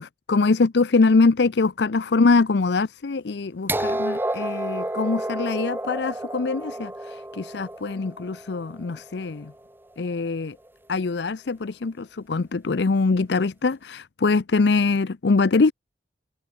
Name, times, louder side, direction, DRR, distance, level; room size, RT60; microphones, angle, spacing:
voice 1, 0.0-9.5 10.0-10.6 10.9-15.7, left 3 dB, 65° left, 0.6 m, -23 dB
sound 1, 3.7-9.6 10.7-10.8, right 1 dB, 10° right, 1.0 m, -31 dB
head